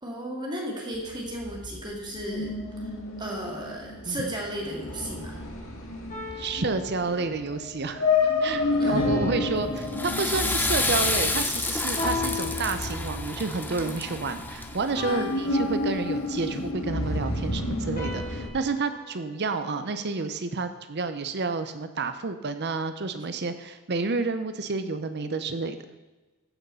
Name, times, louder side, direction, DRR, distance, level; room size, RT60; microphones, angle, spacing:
voice 1, 0.0-2.9 3.2-5.4 8.8-9.1 15.1-15.3, equal, 20° right, -1 dB, 2.0 m, -34 dB
sound 1, 0.9-18.5, left 2 dB, 60° left, 2.1 m, -31 dB
voice 2, 4.0-4.4 6.4-8.1 8.4-25.8, right 4 dB, 50° right, 10 dB, 0.7 m, -30 dB
sound 2, 6.1-7.6 9.0-10.8 12.0-13.4 15.0-16.4 18.0-20.2, left 4 dB, 35° left, 3.0 m, -38 dB
Water / Toilet flush, 9.8-15.0, left 2 dB, 10° left, 0.7 m, -29 dB
15.0 x 6.5 x 5.5 m, 1.2 s
head